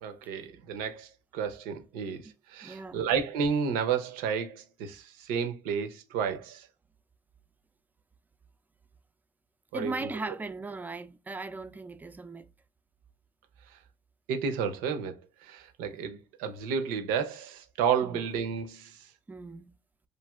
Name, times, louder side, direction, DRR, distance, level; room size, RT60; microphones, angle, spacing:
voice 1, 0.0-6.7 9.7-10.1 14.3-19.1, right 7 dB, 90° right, 0.6 m, -32 dB
voice 2, 2.6-3.0 9.7-12.5 18.0-18.2 19.3-19.7, right 3 dB, 10° right, 0.3 m, -38 dB
3.1 x 2.5 x 2.2 m
cardioid pair, 90°, 14 cm